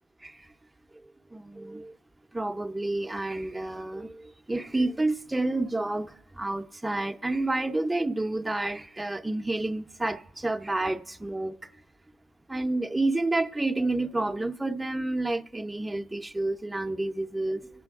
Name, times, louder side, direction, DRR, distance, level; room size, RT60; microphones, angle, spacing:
voice 1, 1.3-1.9 2.3-6.1 6.4-11.6 12.5-17.6, right 2 dB, 10° right, 0.6 m, -29 dB
23.0 x 8.3 x 3.5 m
cardioid pair, 90°, 0 cm